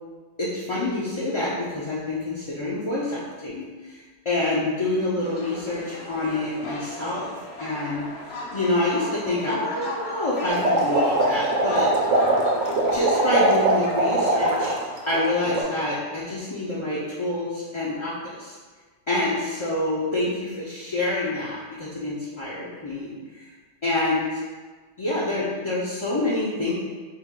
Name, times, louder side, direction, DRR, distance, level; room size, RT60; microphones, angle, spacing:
voice 1, 0.4-7.3 7.6-8.0 8.5-11.9 12.9-14.7 15.1-18.6 19.1-23.5 23.8-24.4 25.0-26.7, left 2 dB, 35° left, -7 dB, 0.5 m, -27 dB
sound 1, 5.2-15.1, left 1 dB, 65° left, 0.9 m, -37 dB
sound 2, 10.5-14.8 15.1-15.6, right 2 dB, 80° right, 1.0 m, -21 dB
4.5 x 2.3 x 3.6 m, 1.4 s
omnidirectional pair, 1.2 m